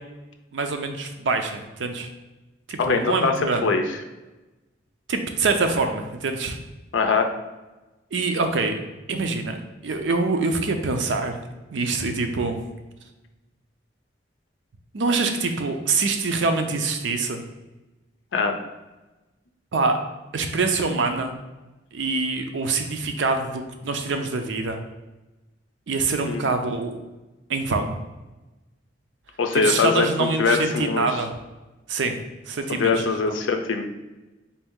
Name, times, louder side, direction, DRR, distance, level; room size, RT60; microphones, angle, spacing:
voice 1, 0.5-2.1 2.7-3.7 5.1-6.6 8.1-8.7 9.1-9.6 9.8-11.4 11.7-12.6 14.9-17.4 19.7-20.0 20.3-21.3 21.9-24.8 25.9-27.0 27.5-27.9 29.5-31.3 31.9-32.2 32.5-33.0, right 3 dB, 75° right, 6 dB, 0.5 m, -25 dB
voice 2, 2.8-3.3 3.6-3.8 6.9-7.3 18.3-18.5 26.2-26.4 29.4-31.1 32.7-33.8, left 4 dB, 90° left, 5 dB, 0.5 m, -22 dB
4.2 x 2.6 x 3.6 m, 1.1 s
head